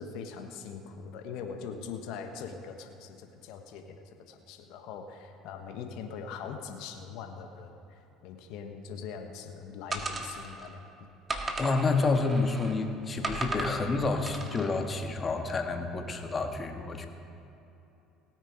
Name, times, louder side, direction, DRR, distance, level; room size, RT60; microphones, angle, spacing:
voice 1, 0.0-10.8, left 6 dB, 65° left, 6 dB, 1.2 m, -42 dB
sound 1, 9.9-10.7 11.3-12.8 13.2-13.8 14.3-14.7, right 3 dB, 30° right, 1.9 m, -35 dB
voice 2, 11.6-17.1, left 3 dB, 30° left, 5 dB, 1.5 m, -29 dB
18.0 x 9.0 x 5.0 m, 2.9 s
hypercardioid pair, 65°, 0 cm